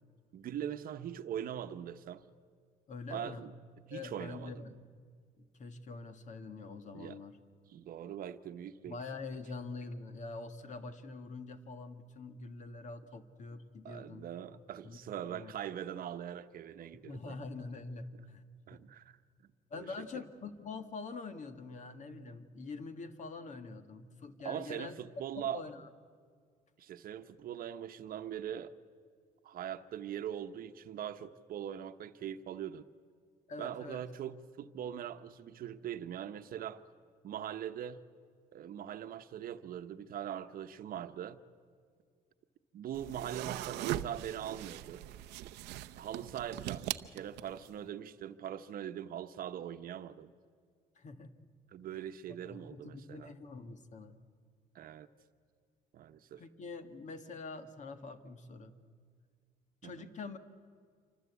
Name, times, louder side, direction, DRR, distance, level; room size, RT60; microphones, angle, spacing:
voice 1, 0.3-2.2 3.1-3.5 3.9-4.6 6.9-7.2 7.7-9.0 13.8-17.4 18.7-19.5 19.7-20.1 24.4-25.6 26.8-28.7 29.4-32.8 33.6-36.8 37.2-38.0 38.5-41.4 42.7-45.0 46.0-50.3 51.7-53.3 54.7-55.1 55.9-56.4 59.8-60.1, right 10 dB, 60° right, 10 dB, 1.1 m, -42 dB
voice 2, 2.9-3.5 3.9-4.9 5.4-7.4 8.9-14.3 14.8-15.0 15.3-15.5 17.0-18.4 18.8-18.9 19.7-24.9 25.4-25.9 33.5-34.0 51.0-51.3 52.5-54.2 56.4-58.8 59.8-60.4, left 3 dB, 45° left, 8 dB, 1.9 m, -45 dB
sound 1, 42.9-47.7, right 14 dB, 90° right, 0.8 m, -40 dB
27.0 x 24.5 x 8.3 m, 2.1 s
cardioid pair, 110°, 17 cm